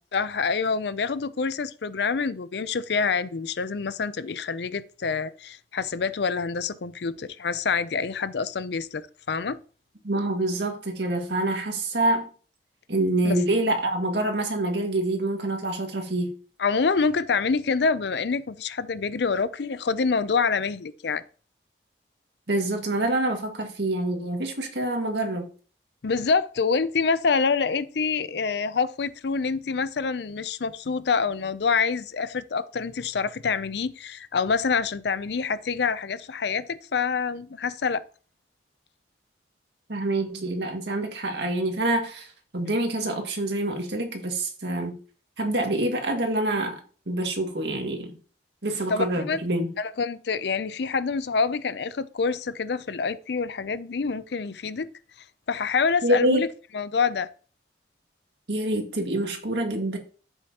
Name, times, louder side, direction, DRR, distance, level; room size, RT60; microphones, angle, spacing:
voice 1, 0.1-9.6 13.2-13.4 16.6-21.2 26.0-38.1 48.9-49.5 49.8-54.9 55.5-56.5 56.7-57.3, left 5 dB, 70° left, 0.5 m, -26 dB
voice 2, 10.0-12.3 12.9-16.3 22.5-25.5 39.9-42.3 42.5-44.9 45.4-46.8 47.1-48.1 48.6-49.7 56.0-56.4 58.5-60.0, right 1 dB, 70° right, 2.0 m, -26 dB
10.5 x 8.2 x 2.9 m
head